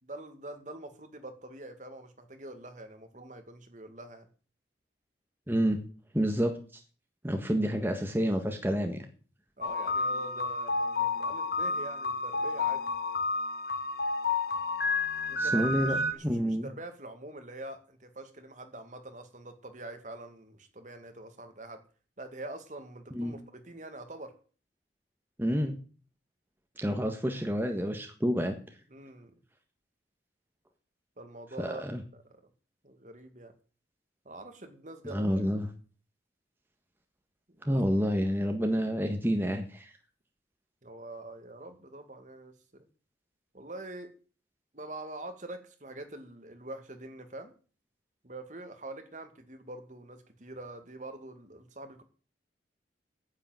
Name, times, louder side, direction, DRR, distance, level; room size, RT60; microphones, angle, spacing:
voice 1, 0.0-4.3 8.2-8.3 9.6-12.8 15.3-15.7 16.1-21.8 22.2-24.3 28.9-29.4 31.2-31.8 32.1-32.4 32.8-33.5 34.3-35.4 37.5-37.8 40.8-42.9 43.5-44.1 44.7-47.5 48.2-52.0, right 2 dB, 45° right, 7 dB, 2.2 m, -45 dB
voice 2, 5.5-5.8 6.1-6.8 7.2-9.0 15.4-16.7 23.1-23.3 25.4-25.7 26.8-28.6 31.6-32.0 35.1-35.7 37.6-39.9, equal, 10° right, 4 dB, 1.5 m, -29 dB
sound 1, 9.6-16.1, left 3 dB, 55° left, 1.8 m, -30 dB
9.9 x 8.9 x 9.1 m, 0.39 s
head